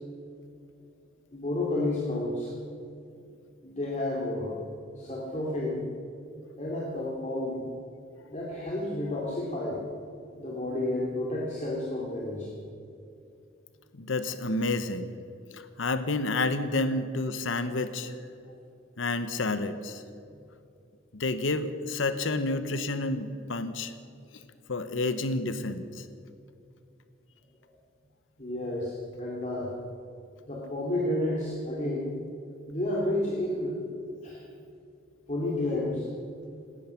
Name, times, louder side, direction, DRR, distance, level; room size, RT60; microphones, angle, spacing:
voice 1, 1.3-2.5 3.6-4.6 5.0-5.8 6.6-7.6 8.3-9.8 10.4-12.5 28.4-29.7 30.5-32.1 32.7-33.7 34.2-34.4 35.3-36.1, left 1 dB, 35° left, -5 dB, 2.5 m, -31 dB
voice 2, 13.9-15.1 15.5-18.1 19.0-20.0 21.1-23.9 24.7-26.0, left 2 dB, 80° left, 11 dB, 0.9 m, -30 dB
18.0 x 13.0 x 5.8 m, 2.5 s
head